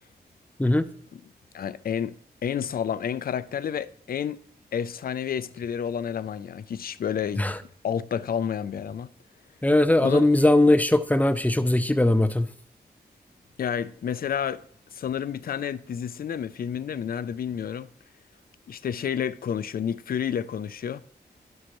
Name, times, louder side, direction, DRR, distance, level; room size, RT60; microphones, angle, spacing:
voice 1, 1.5-4.4 4.7-7.4 7.8-9.1 10.0-10.4 13.6-14.6 14.9-17.9 18.7-21.0, left 8 dB, 60° left, 0.4 m, -30 dB
voice 2, 9.6-12.5, left 1 dB, 10° left, 0.6 m, -20 dB
11.0 x 6.4 x 3.0 m
cardioid pair, 50°, 17 cm